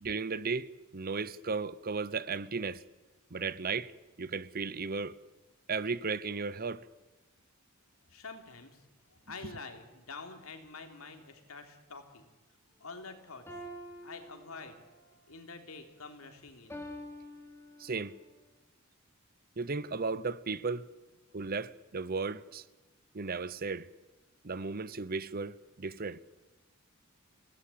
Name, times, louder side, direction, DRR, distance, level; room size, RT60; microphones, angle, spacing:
voice 1, 0.0-2.8 3.3-3.9 4.2-5.2 5.7-6.9 17.8-18.1 19.6-20.9 21.3-22.6 23.1-23.9 24.4-26.2, right 4 dB, 45° right, 0.8 m, -35 dB
voice 2, 8.1-8.9 9.3-12.3 12.8-13.6 14.0-14.8 15.3-16.8, left 4 dB, 90° left, 3.4 m, -47 dB
sound 1, 13.5-15.0 16.7-18.2, equal, 10° left, 5.0 m, -46 dB
28.5 x 18.0 x 8.6 m
head